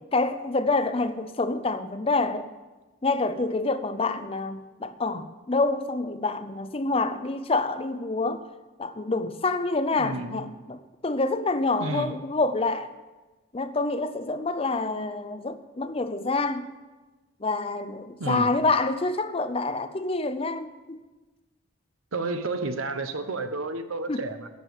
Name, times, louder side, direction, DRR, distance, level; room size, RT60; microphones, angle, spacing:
voice 1, 0.1-2.5 3.0-8.4 8.8-10.8 11.0-12.9 13.5-16.7 17.4-21.0 24.1-24.2, left 3 dB, 30° left, 0.5 m, -27 dB
voice 2, 10.0-10.4 11.8-12.2 18.2-18.5 22.1-24.5, right 2 dB, 90° right, 1.0 m, -31 dB
11.0 x 7.3 x 8.0 m
head